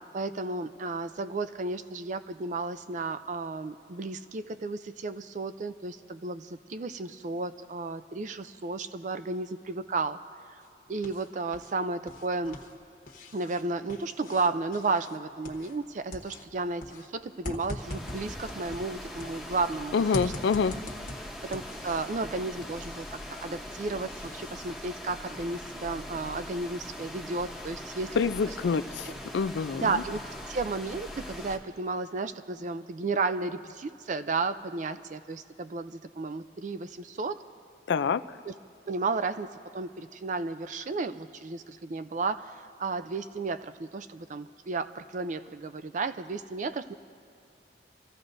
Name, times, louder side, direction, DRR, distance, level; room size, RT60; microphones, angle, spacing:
voice 1, 0.0-10.2 10.5-10.6 10.9-12.6 13.3-20.3 20.6-20.8 21.2-28.2 29.8-30.2 30.5-37.4 38.5-38.6 38.9-46.9, right 3 dB, 45° right, 11 dB, 0.4 m, -33 dB
sound 1, 10.6-11.7 12.0-19.7 20.1-22.2 22.6-24.7, left 1 dB, 50° left, 1.3 m, -43 dB
sound 2, 17.8-31.6, left 1 dB, 5° right, 1.0 m, -41 dB
voice 2, 19.9-20.7 28.2-30.0 37.9-38.2, left 5 dB, 80° left, 13 dB, 0.4 m, -27 dB
29.0 x 15.0 x 2.6 m, 2.5 s
head